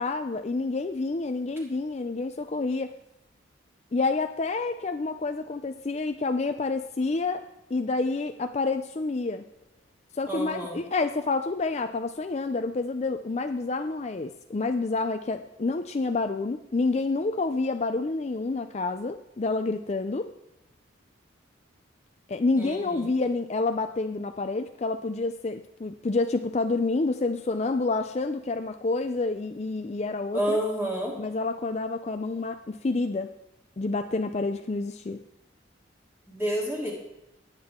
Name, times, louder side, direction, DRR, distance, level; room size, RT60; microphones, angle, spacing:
voice 1, 0.0-2.9 3.9-7.4 7.7-9.4 10.1-20.3 22.3-30.6 31.2-33.3 33.8-35.2, left 3 dB, 35° left, 7 dB, 0.4 m, -28 dB
voice 2, 10.3-10.8 22.6-23.1 30.3-31.2 36.3-36.9, equal, 10° right, -4 dB, 3.2 m, -29 dB
20.0 x 9.0 x 3.7 m, 0.89 s
head